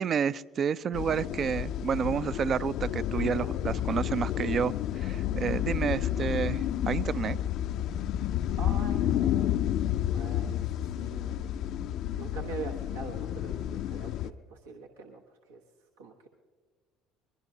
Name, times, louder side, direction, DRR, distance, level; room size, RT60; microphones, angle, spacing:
voice 1, 0.0-7.4, right 7 dB, 45° right, 0.4 m, -30 dB
sound 1, 0.9-14.3, left 11 dB, 60° left, 0.4 m, -30 dB
voice 2, 8.6-9.8 10.1-11.4 12.1-15.2 15.5-15.6 16.0-16.3, right 4 dB, 85° right, 1.1 m, -43 dB
22.5 x 21.5 x 2.7 m
hypercardioid pair, 65°, 0 cm